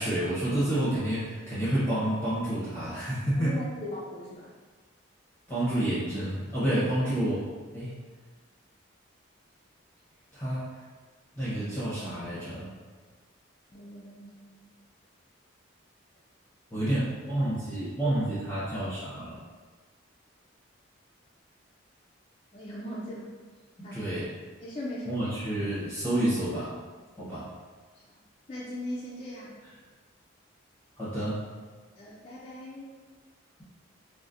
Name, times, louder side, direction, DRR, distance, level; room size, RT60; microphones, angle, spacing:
voice 1, 0.0-3.5 5.5-7.5 7.7-7.9 10.3-10.6 11.4-12.7 16.7-19.4 23.9-24.3 25.1-26.7 27.2-27.5 31.0-31.4, right 1 dB, 10° left, -12 dB, 0.8 m, -29 dB
voice 2, 3.4-4.5 13.7-14.5 22.5-23.3 23.8-24.0 24.6-25.1 28.5-29.5 32.0-32.9, left 1 dB, 30° left, -7 dB, 0.4 m, -39 dB
3.9 x 2.0 x 2.5 m, 1.4 s
head